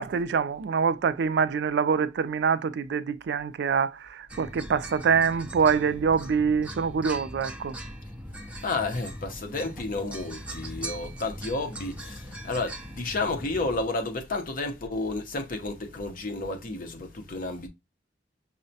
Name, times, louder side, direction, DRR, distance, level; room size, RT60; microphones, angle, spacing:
voice 1, 0.0-7.8, right 6 dB, 65° right, 0.3 m, -25 dB
sound 1, 4.3-13.8, right 1 dB, 5° right, 0.5 m, -40 dB
voice 2, 8.6-17.7, left 3 dB, 50° left, 0.7 m, -31 dB
5.4 x 2.1 x 2.7 m
head